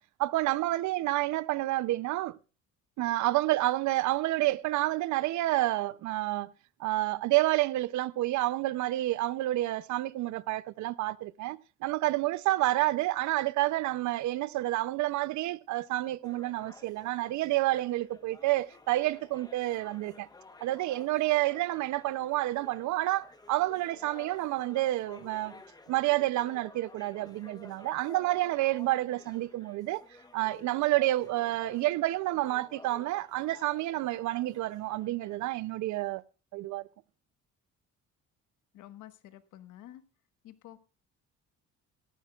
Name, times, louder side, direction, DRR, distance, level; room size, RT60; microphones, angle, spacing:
voice 1, 0.2-2.4 3.0-6.5 6.8-20.3 20.6-25.6 25.9-30.0 30.3-36.2 36.5-36.9, right 17 dB, 70° right, 0.5 m, -29 dB
sound 1, 16.2-35.4, left 3 dB, 15° left, 1.0 m, -53 dB
voice 2, 38.7-40.0 40.4-40.8, left 13 dB, 85° left, 1.3 m, -50 dB
17.5 x 14.0 x 2.3 m
cardioid pair, 140°, 30 cm